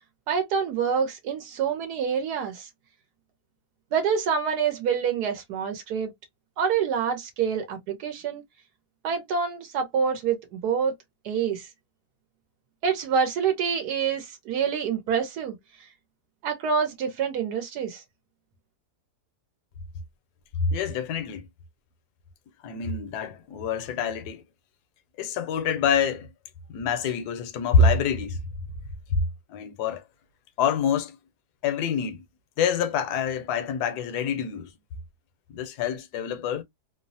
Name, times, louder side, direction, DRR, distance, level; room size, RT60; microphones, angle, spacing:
voice 1, 0.3-2.7 3.9-6.1 6.6-8.4 9.0-10.9 11.2-11.7 12.8-15.6 16.4-18.0, right 6 dB, 85° right, 1.3 m, -26 dB
voice 2, 20.6-21.4 22.6-24.4 25.2-26.3 26.7-28.4 29.5-30.0 30.6-31.2 31.6-32.2 32.6-34.7 35.5-36.6, left 5 dB, 80° left, 1.2 m, -26 dB
3.1 x 2.0 x 2.6 m
omnidirectional pair, 1.7 m